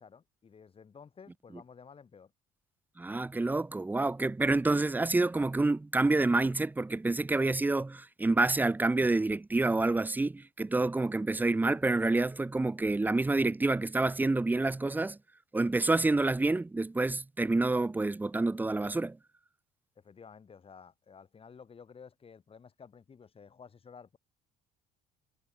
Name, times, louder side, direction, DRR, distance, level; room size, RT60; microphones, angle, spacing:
voice 1, 0.0-2.3 20.0-24.2, left 6 dB, 35° left, 5.9 m, -53 dB
voice 2, 3.0-15.2 15.5-19.2, right 2 dB, 10° right, 0.6 m, -28 dB
cardioid pair, 110°, 17 cm